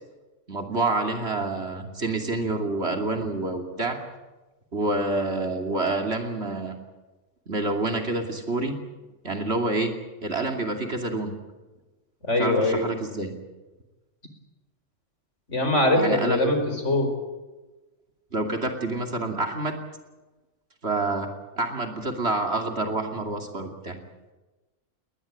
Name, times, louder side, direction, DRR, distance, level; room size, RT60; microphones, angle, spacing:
voice 1, 0.5-4.0 4.7-6.7 7.5-8.8 9.2-9.9 10.2-11.4 12.4-13.3 15.9-16.5 18.3-19.8 20.8-21.3 21.6-24.0, right 2 dB, 55° right, 4 dB, 3.0 m, -27 dB
voice 2, 12.2-12.8 15.5-16.6 16.8-17.1, left 1 dB, 70° left, 5 dB, 5.2 m, -22 dB
21.0 x 20.0 x 8.6 m, 1.1 s
omnidirectional pair, 1.3 m